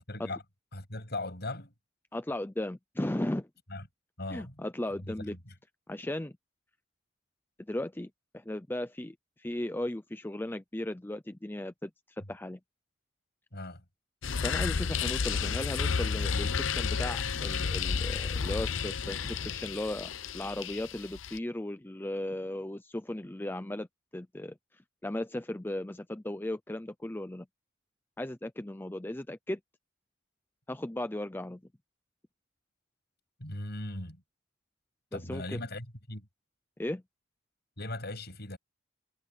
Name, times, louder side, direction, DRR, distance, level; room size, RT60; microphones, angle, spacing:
voice 1, 0.1-0.4 0.7-1.7 3.7-3.9 4.2-4.6 4.9-5.5 13.5-13.8 33.4-34.2 35.1-36.3 37.8-38.6, left 2 dB, 55° left, 7.7 m, -39 dB
voice 2, 2.1-3.5 4.3-5.3 5.9-6.3 7.7-12.6 14.4-23.9 24.1-24.5 25.0-27.5 28.2-29.6 30.7-31.6 35.1-35.6 36.8-37.0, left 1 dB, 10° left, 0.6 m, -36 dB
sound 1, 14.2-21.4, left 5 dB, 75° left, 0.8 m, -31 dB
head